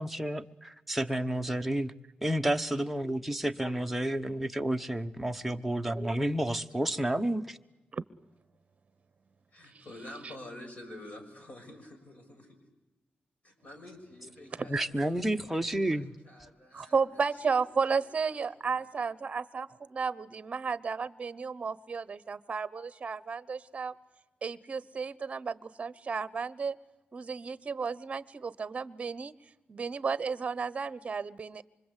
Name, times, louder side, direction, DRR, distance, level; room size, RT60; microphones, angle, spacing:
voice 1, 0.0-1.9 2.2-7.6 14.7-16.1, right 1 dB, 5° right, 1.1 m, -30 dB
voice 2, 9.5-12.6 13.4-15.2 15.5-17.0 17.4-18.1 18.4-18.6, left 1 dB, 50° left, 6.8 m, -48 dB
voice 3, 14.7-15.1 16.7-23.9 24.4-26.8 27.1-29.3 29.7-31.6, right 5 dB, 40° right, 1.0 m, -33 dB
25.5 x 25.0 x 8.3 m
wide cardioid pair, 130°, 3 cm